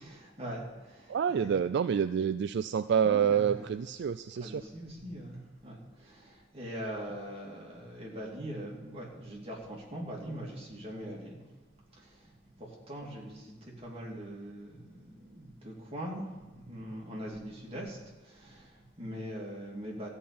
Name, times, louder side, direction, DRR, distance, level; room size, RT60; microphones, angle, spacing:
voice 1, 0.0-1.5 3.0-3.7 4.4-11.6 11.9-20.1, equal, 30° right, -3 dB, 2.8 m, -42 dB
voice 2, 1.1-4.6, right 7 dB, 65° right, 13 dB, 0.3 m, -28 dB
14.5 x 5.6 x 8.6 m, 1.2 s
head